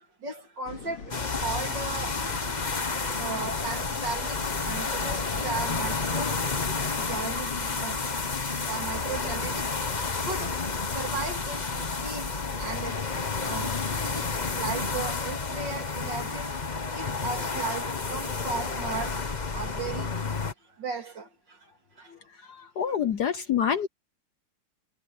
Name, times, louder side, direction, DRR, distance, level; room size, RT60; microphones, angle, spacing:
voice 1, 0.2-1.0 1.4-2.1 3.2-4.4 4.6-6.4 6.8-7.5 7.8-7.9 8.6-9.6 10.2-10.5 11.0-11.6 12.0-12.3 12.6-13.0 13.4-14.2 14.6-16.5 16.9-17.8 18.1-19.1 19.5-20.1 20.8-21.2, right 4 dB, 55° right, 3.7 m, -35 dB
sound 1, 0.6-18.7, left 4 dB, 80° left, 3.9 m, -49 dB
sound 2, 1.1-20.5, left 4 dB, 25° left, 1.0 m, -30 dB
voice 2, 22.5-23.9, left 8 dB, 60° left, 1.2 m, -27 dB
omnidirectional pair, 2.3 m